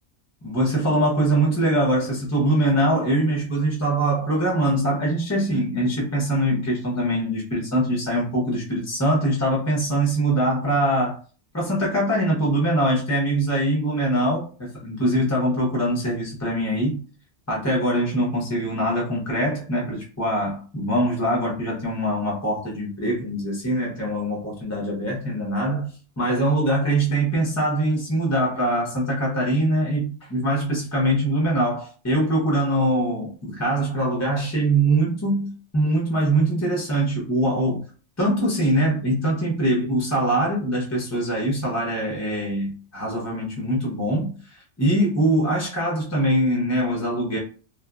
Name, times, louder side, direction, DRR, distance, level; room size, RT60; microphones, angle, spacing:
voice 1, 0.4-11.2 11.5-17.0 17.5-37.8 38.2-47.4, right 1 dB, 20° left, -3 dB, 0.5 m, -23 dB
2.8 x 2.3 x 2.3 m, 0.39 s
omnidirectional pair, 1.3 m